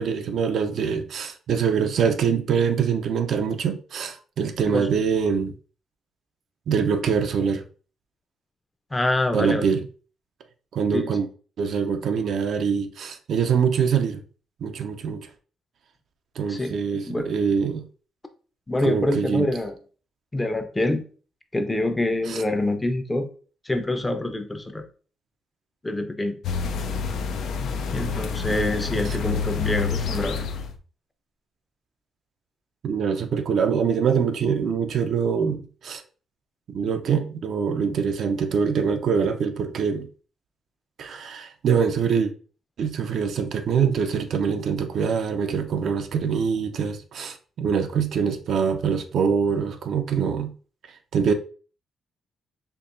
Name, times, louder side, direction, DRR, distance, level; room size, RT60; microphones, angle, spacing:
voice 1, 0.0-5.5 6.7-7.6 9.3-9.9 10.7-11.3 11.6-14.2 14.6-15.3 16.4-17.9 18.8-19.5 22.3-22.4 32.8-36.0 36.7-40.1 41.0-42.3 42.8-50.5 50.9-51.3, right 6 dB, 65° right, 0.5 m, -24 dB
voice 2, 8.9-9.6 10.9-11.1 16.5-17.3 18.7-19.7 20.3-21.0 21.5-23.3 23.7-24.9 25.8-26.4 27.9-30.4, left 1 dB, 15° left, 0.6 m, -26 dB
sound 1, 26.4-30.8, left 5 dB, 75° left, 0.4 m, -28 dB
4.5 x 2.8 x 2.6 m
cardioid pair, 100°, 0 cm